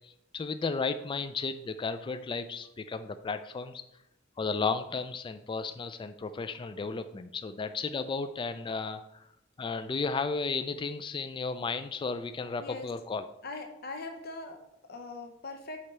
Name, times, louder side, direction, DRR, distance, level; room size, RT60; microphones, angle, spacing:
voice 1, 0.0-3.8 4.4-9.0 9.6-13.2, left 4 dB, 25° left, 10 dB, 0.3 m, -34 dB
voice 2, 13.4-14.6 14.9-15.8, left 3 dB, 55° left, 4 dB, 0.7 m, -41 dB
4.9 x 4.3 x 5.4 m, 0.81 s
head